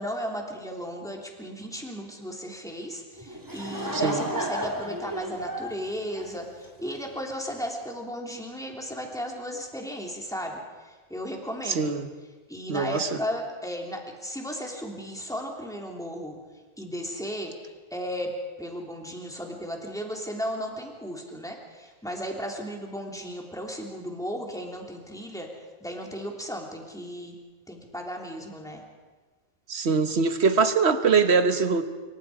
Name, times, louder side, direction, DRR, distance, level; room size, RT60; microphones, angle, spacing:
voice 1, 0.0-12.0 12.5-16.4 16.8-17.5 17.9-18.3 18.6-25.5 25.8-27.4 27.7-28.8, equal, 5° left, 0 dB, 3.2 m, -35 dB
Laughter / Crowd, 3.2-7.0, right 1 dB, 15° right, 2.2 m, -33 dB
voice 2, 3.9-4.3 11.7-12.1 12.7-13.2 29.7-31.8, right 5 dB, 70° right, 9 dB, 1.5 m, -23 dB
26.0 x 24.0 x 4.9 m, 1.3 s
omnidirectional pair, 1.2 m